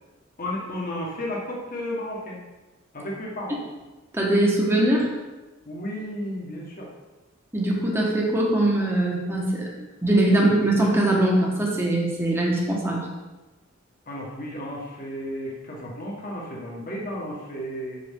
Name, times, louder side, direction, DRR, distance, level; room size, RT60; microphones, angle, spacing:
voice 1, 0.4-2.4 2.9-3.6 5.6-6.9 9.7-9.8 10.3-10.4 14.1-18.0, left 1 dB, 45° left, -3 dB, 1.6 m, -33 dB
voice 2, 4.1-5.1 7.5-9.7 10.0-13.1, right 1 dB, 10° right, -3 dB, 1.4 m, -21 dB
7.8 x 6.7 x 3.7 m, 1.1 s
head